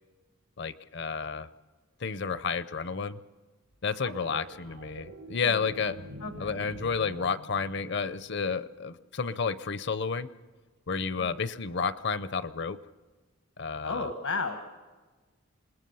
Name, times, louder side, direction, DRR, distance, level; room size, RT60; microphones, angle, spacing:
voice 1, 0.6-1.5 2.0-3.2 3.8-6.0 6.4-10.3 10.9-12.8 13.6-14.1, left 5 dB, 50° left, 14 dB, 0.7 m, -31 dB
voice 2, 4.0-4.5 6.2-6.6 11.2-11.4 13.8-14.7, left 4 dB, 75° left, 6 dB, 1.5 m, -34 dB
sound 1, 4.2-8.7 11.1-11.2, equal, 85° right, 3.7 m, -46 dB
27.0 x 20.5 x 5.6 m, 1.3 s
head